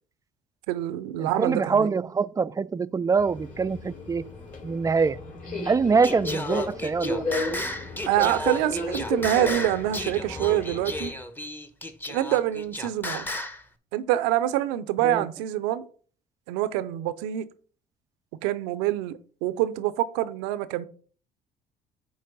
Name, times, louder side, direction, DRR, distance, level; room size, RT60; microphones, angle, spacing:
voice 1, 0.7-2.0 8.1-11.1 12.1-13.3 13.9-15.8 16.5-17.5 18.4-20.9, right 13 dB, 75° right, 0.6 m, -26 dB
voice 2, 1.2-4.2 4.6-5.2 5.7-7.2 15.0-15.2, right 5 dB, 15° right, 0.3 m, -24 dB
Subway metro underground, 3.2-11.1, left 2 dB, 40° left, 2.8 m, -34 dB
Singing, 6.0-13.6, left 1 dB, 10° left, 0.9 m, -34 dB
8.8 x 3.2 x 5.2 m
hypercardioid pair, 55°, 20 cm